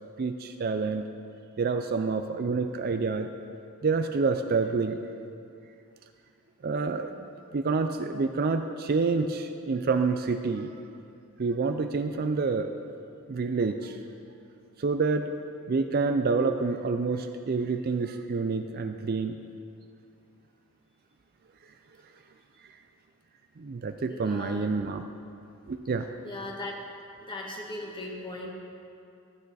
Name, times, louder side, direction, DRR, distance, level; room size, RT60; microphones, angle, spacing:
voice 1, 0.2-1.1 1.6-3.3 3.8-5.0 6.6-7.3 7.5-10.7 11.4-12.8 13.3-14.0 14.8-15.3 15.7-19.4 23.6-25.0 25.7-26.1, right 4 dB, 45° right, 7 dB, 0.4 m, -28 dB
voice 2, 24.1-24.9 26.2-26.8 27.2-28.5, left 1 dB, 20° left, -1 dB, 1.4 m, -38 dB
13.5 x 8.7 x 4.1 m, 2.5 s
head